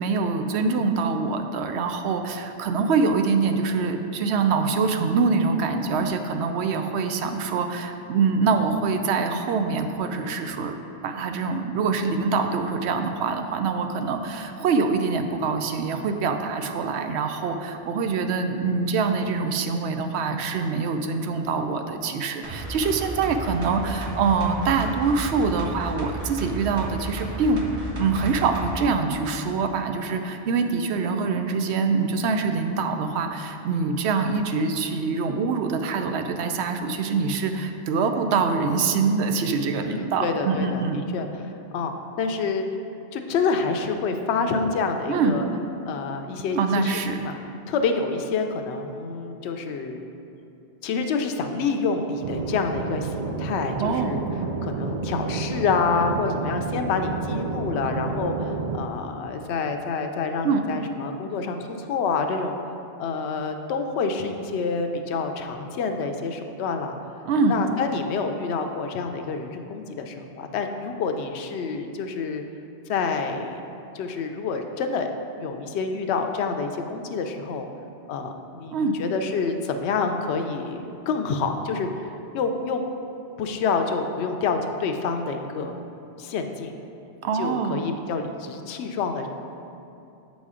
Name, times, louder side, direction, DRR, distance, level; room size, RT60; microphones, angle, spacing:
voice 1, 0.0-10.8 11.0-27.6 28.0-41.0 45.1-45.4 46.5-47.2 53.8-54.2 60.4-60.6 67.3-67.6 78.7-79.0 87.2-87.9, right 4 dB, 80° right, 6 dB, 0.8 m, -24 dB
sound 1, 22.4-28.8 29.1-29.2, right 2 dB, 30° right, 0.8 m, -33 dB
voice 2, 39.8-40.8 41.1-41.5 41.7-42.7 43.1-45.5 45.9-47.4 47.7-50.0 50.8-54.2 54.6-62.6 63.0-67.0 67.5-72.4 72.9-73.6 73.9-75.1 75.4-77.7 78.1-82.8 83.4-85.8 86.2-86.7 87.3-89.3, left 4 dB, 80° left, 5 dB, 0.8 m, -27 dB
sound 2, 52.2-58.8, right 4 dB, 60° right, 0.4 m, -30 dB
7.9 x 4.1 x 4.9 m, 2.8 s
omnidirectional pair, 1.1 m